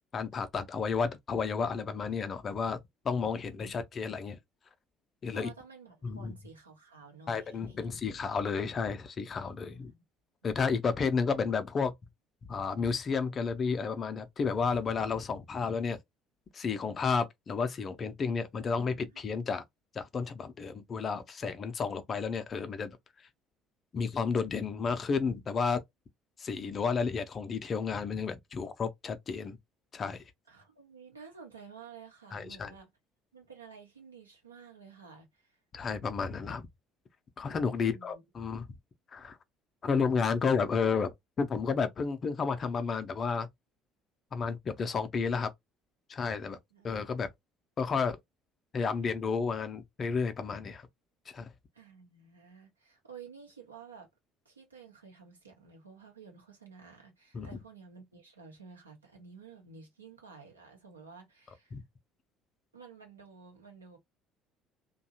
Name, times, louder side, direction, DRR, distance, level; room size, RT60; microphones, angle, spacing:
voice 1, 0.1-2.8 3.0-4.4 5.2-5.5 6.0-6.3 7.3-9.9 10.4-11.9 12.5-16.0 16.5-19.6 19.9-22.9 23.9-25.8 26.4-29.6 29.9-30.2 32.3-32.7 35.7-36.7 37.4-38.7 39.1-39.4 39.8-43.5 44.3-45.5 46.1-46.6 46.8-47.3 47.8-48.2 48.7-50.9 51.3-51.5 57.3-57.6 61.7-61.8, left 5 dB, 35° left, 0.5 m, -31 dB
voice 2, 5.3-8.0 9.7-10.0 18.6-19.2 30.5-32.9 33.3-35.6 37.7-38.2 46.7-46.9 51.7-54.1 54.4-61.8 62.7-64.0, right 5 dB, 85° right, 0.8 m, -52 dB
2.6 x 2.3 x 2.6 m
figure-of-eight pair, 55°, 0 cm